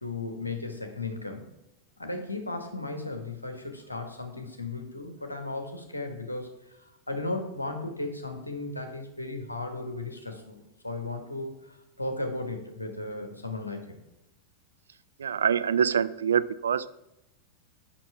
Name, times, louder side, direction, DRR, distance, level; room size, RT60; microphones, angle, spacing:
voice 1, 0.0-1.4 2.0-6.5 7.1-14.0, left 2 dB, 85° left, 5 dB, 1.3 m, -35 dB
voice 2, 15.2-16.9, right 8 dB, 65° right, 15 dB, 0.3 m, -25 dB
6.0 x 5.8 x 5.8 m, 0.89 s
figure-of-eight pair, 90°, 0 cm